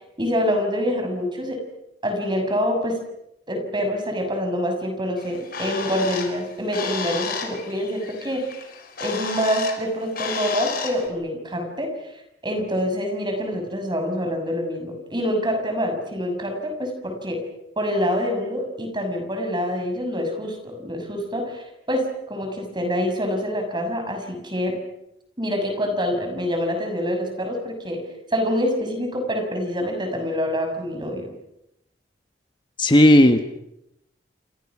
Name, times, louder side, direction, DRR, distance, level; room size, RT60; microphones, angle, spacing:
voice 1, 0.2-1.6 2.0-3.0 3.5-8.4 9.0-17.4 17.8-24.8 25.4-28.0 28.3-31.3, equal, 25° right, 4 dB, 6.4 m, -26 dB
Bird, 5.2-11.1, left 5 dB, 55° left, 4.5 m, -32 dB
voice 2, 32.8-33.4, left 1 dB, 25° left, 7 dB, 1.4 m, -13 dB
28.5 x 27.5 x 6.1 m, 0.82 s
head